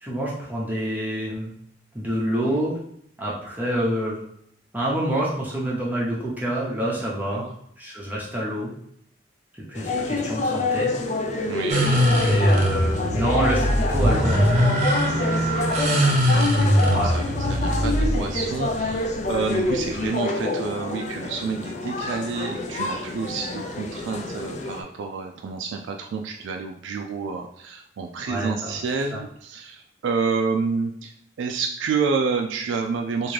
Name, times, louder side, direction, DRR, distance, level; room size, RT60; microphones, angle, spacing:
voice 1, 0.0-1.5 1.9-2.8 3.2-4.2 4.7-7.4 7.8-8.7 9.5-10.9 12.1-14.8 16.9-17.1 28.3-28.8 29.1-29.2, right 1 dB, 10° right, -5 dB, 0.6 m, -27 dB
sound 1, 9.7-24.8, left 2 dB, 40° left, 0.4 m, -27 dB
voice 2, 11.5-12.0 16.0-31.1 31.4-33.3, right 5 dB, 80° right, 2 dB, 0.3 m, -29 dB
sound 2, 11.7-20.0, equal, 40° right, 0.8 m, -21 dB
3.6 x 2.6 x 3.1 m, 0.70 s
head